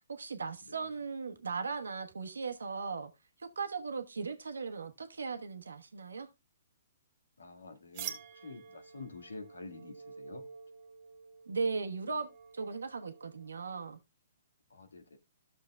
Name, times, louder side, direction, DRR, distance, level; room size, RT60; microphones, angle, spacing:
voice 1, 0.1-3.1 3.4-6.3 11.5-12.3 12.5-14.0, right 4 dB, 85° right, 1.1 m, -37 dB
voice 2, 7.4-10.4 14.7-15.2, left 3 dB, 85° left, 1.6 m, -48 dB
sound 1, 7.9-13.5, right 8 dB, 45° right, 1.3 m, -48 dB
13.5 x 6.7 x 2.2 m
hypercardioid pair, 125°, 0 cm